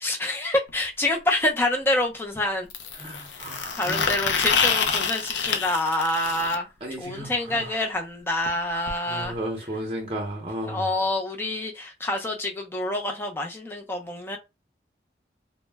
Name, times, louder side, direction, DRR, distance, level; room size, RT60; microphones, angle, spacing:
voice 1, 0.0-2.7 3.7-6.7 7.0-9.4 10.7-14.4, left 1 dB, 15° left, 0.4 m, -27 dB
sound 1, 0.7-0.8 2.7-6.5 8.5-8.6 8.9-9.0 9.2-9.3 10.3-10.4, left 6 dB, 90° left, 0.4 m, -27 dB
voice 2, 2.9-4.1 6.8-7.8 9.1-11.0, right 1 dB, 30° right, 0.6 m, -34 dB
2.1 x 2.1 x 3.3 m
head